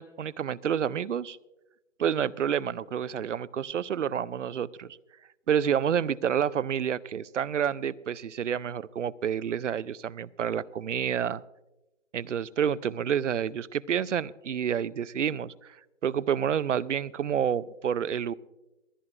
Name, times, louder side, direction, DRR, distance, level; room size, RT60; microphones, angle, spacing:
voice 1, 0.0-1.4 2.0-5.0 5.5-11.4 12.1-15.8 16.0-18.3, right 8 dB, 70° right, 21 dB, 0.6 m, -29 dB
28.0 x 9.8 x 2.5 m, 0.99 s
hypercardioid pair, 180°, 37 cm